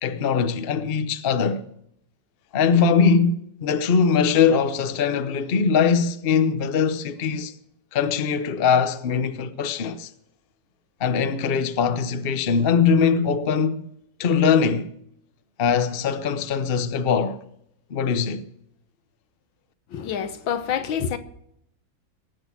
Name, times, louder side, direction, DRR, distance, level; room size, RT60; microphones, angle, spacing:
voice 1, 0.0-1.6 2.5-7.5 7.9-10.1 11.0-13.8 14.2-14.9 15.6-17.4 17.9-18.4, left 6 dB, 45° left, 0.7 m, -21 dB
voice 2, 19.9-21.2, left 8 dB, 80° left, 1.8 m, -27 dB
20.0 x 8.2 x 5.9 m
omnidirectional pair, 2.1 m